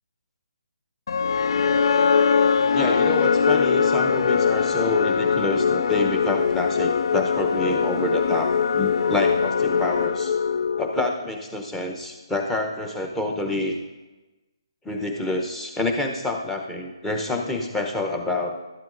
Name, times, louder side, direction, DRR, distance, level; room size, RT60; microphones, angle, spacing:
sound 1, 1.1-11.3, left 6 dB, 60° left, 0.3 m, -21 dB
voice 1, 2.7-10.3 10.8-13.8 14.8-18.5, left 2 dB, 5° left, 2 dB, 0.8 m, -27 dB
12.0 x 12.0 x 2.6 m, 1.2 s
figure-of-eight pair, 150°, 3 cm